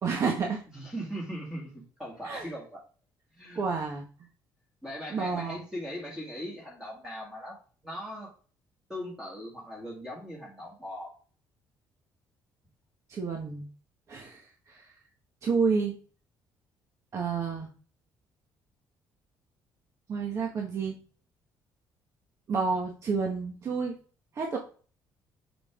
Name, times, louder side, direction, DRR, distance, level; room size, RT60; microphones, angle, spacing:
voice 1, 0.0-0.6 2.2-2.5 3.5-4.1 5.1-5.6 13.1-13.7 14.1-14.9 15.4-16.0 17.1-17.7 20.1-21.0 22.5-23.9 24.3-24.6, right 5 dB, 40° right, 1 dB, 1.3 m, -30 dB
voice 2, 0.7-2.8 3.4-3.6 4.8-8.3 8.9-11.1, equal, 5° right, -4 dB, 2.1 m, -39 dB
6.2 x 5.9 x 3.7 m, 0.38 s
cardioid pair, 155°, 8 cm